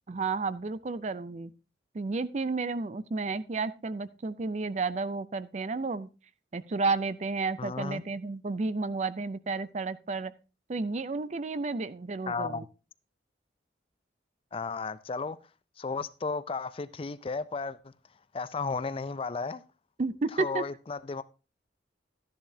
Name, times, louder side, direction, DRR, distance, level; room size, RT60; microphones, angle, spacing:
voice 1, 0.1-1.5 1.9-6.1 6.5-10.3 10.7-12.6 20.0-20.6, right 3 dB, 40° right, 0.4 m, -32 dB
voice 2, 7.6-8.0 12.3-12.7 14.5-15.4 15.8-17.9 18.3-19.6 20.3-21.2, left 4 dB, 30° left, 0.4 m, -34 dB
12.5 x 10.5 x 2.7 m
head